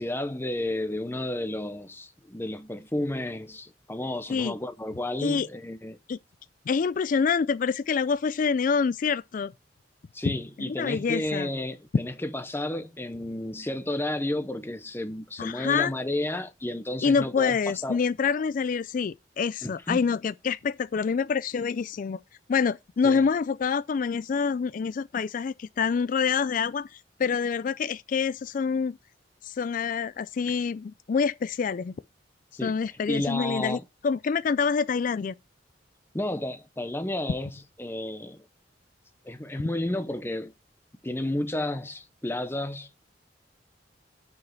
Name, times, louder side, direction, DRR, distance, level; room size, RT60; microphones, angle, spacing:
voice 1, 0.0-6.0 10.1-17.6 17.8-18.0 19.6-20.0 23.0-23.3 32.5-33.8 36.1-38.4 39.2-40.5 41.0-42.9, left 1 dB, 15° left, 0.6 m, -32 dB
voice 2, 6.7-9.5 10.2-10.4 10.8-11.5 15.4-15.9 17.0-22.2 22.5-29.0 29.4-32.0 32.6-33.8 34.0-35.3, left 5 dB, 45° left, 0.3 m, -26 dB
9.5 x 4.8 x 4.5 m
head